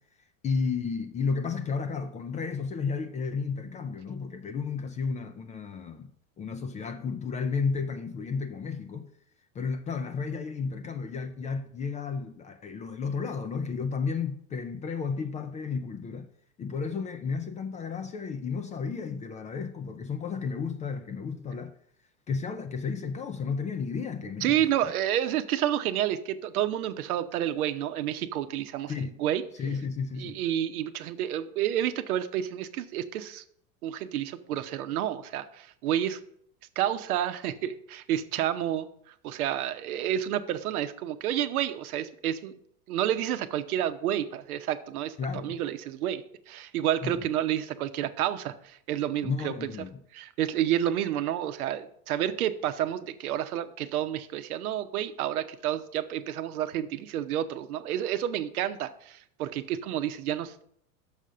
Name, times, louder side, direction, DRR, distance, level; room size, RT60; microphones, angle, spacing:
voice 1, 0.4-6.1 6.4-9.1 9.5-16.3 16.6-21.7 22.3-24.9 28.9-29.2 29.6-30.4 45.2-45.6 47.0-47.2 49.2-50.0, left 5 dB, 20° left, 0.3 m, -32 dB
voice 2, 24.4-28.9 29.2-29.4 30.2-33.4 33.8-36.2 36.8-38.9 39.2-42.5 42.9-45.1 45.4-49.7 50.1-60.6, right 11 dB, 85° right, 0.8 m, -30 dB
6.4 x 5.0 x 6.7 m
supercardioid pair, 110°, 42 cm